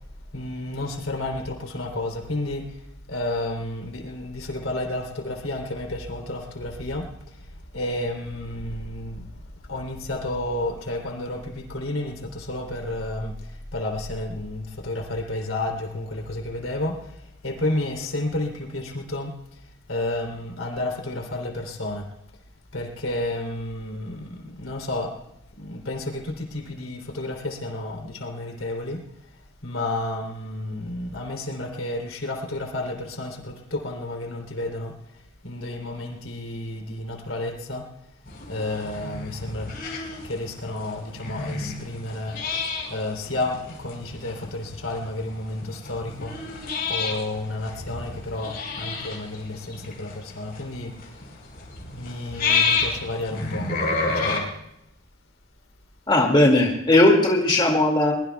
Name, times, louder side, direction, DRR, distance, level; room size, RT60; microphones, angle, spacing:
voice 1, 0.3-2.8 3.1-7.4 7.7-9.3 9.7-19.3 19.9-22.1 22.7-25.1 25.6-29.0 29.6-34.9 35.4-37.8 38.5-39.7 40.2-42.4 42.9-46.3 46.9-50.9 51.9-53.7 54.1-54.5, left 1 dB, 80° left, 2 dB, 3.3 m, -31 dB
sound 1, 38.3-54.4, left 4 dB, 45° left, 4.7 m, -30 dB
voice 2, 56.1-58.1, left 1 dB, 25° left, -1 dB, 2.2 m, -18 dB
22.0 x 22.0 x 2.3 m, 0.82 s
head